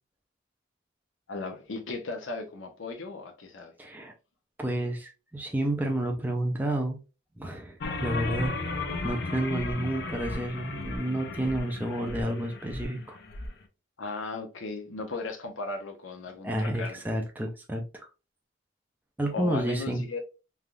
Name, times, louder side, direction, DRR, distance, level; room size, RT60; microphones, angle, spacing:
voice 1, 1.3-3.7 14.0-17.0 19.3-20.2, left 3 dB, 90° left, 0.8 m, -36 dB
voice 2, 3.8-4.1 4.6-7.0 7.4-8.7 9.0-13.2 16.4-18.1 19.2-20.0, right 1 dB, 10° right, 0.4 m, -30 dB
sound 1, 7.8-13.5, left 2 dB, 55° left, 0.5 m, -35 dB
3.3 x 2.3 x 2.4 m
head